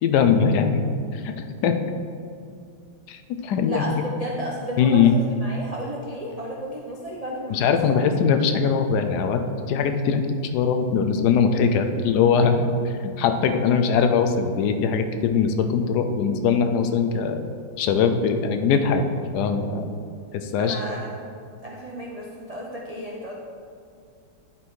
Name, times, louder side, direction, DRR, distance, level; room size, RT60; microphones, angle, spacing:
voice 1, 0.0-0.8 1.1-1.3 1.6-1.8 3.1-4.0 4.8-5.1 7.5-9.4 9.7-10.3 10.5-17.4 17.8-19.0 19.3-19.9 20.3-20.8, left 6 dB, 70° left, 7 dB, 1.1 m, -21 dB
voice 2, 3.7-8.1 20.6-21.1 21.6-23.3, equal, 80° right, -3 dB, 0.3 m, -33 dB
10.5 x 4.5 x 4.5 m, 2.4 s
omnidirectional pair, 2.0 m